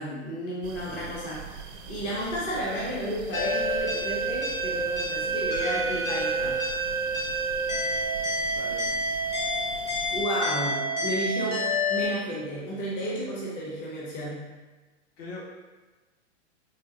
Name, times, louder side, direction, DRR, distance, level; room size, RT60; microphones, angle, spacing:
voice 1, 0.0-1.5 1.9-6.6 10.1-14.5, equal, 20° left, -5 dB, 0.4 m, -32 dB
sound 1, 0.6-10.3, right 6 dB, 50° right, 0.4 m, -43 dB
sound 2, 3.3-12.1, right 1 dB, 40° left, 1.1 m, -28 dB
voice 2, 8.5-8.8 15.2-15.4, left 3 dB, 60° left, -5 dB, 1.3 m, -40 dB
3.7 x 2.3 x 2.6 m, 1.2 s
hypercardioid pair, 135°, 36 cm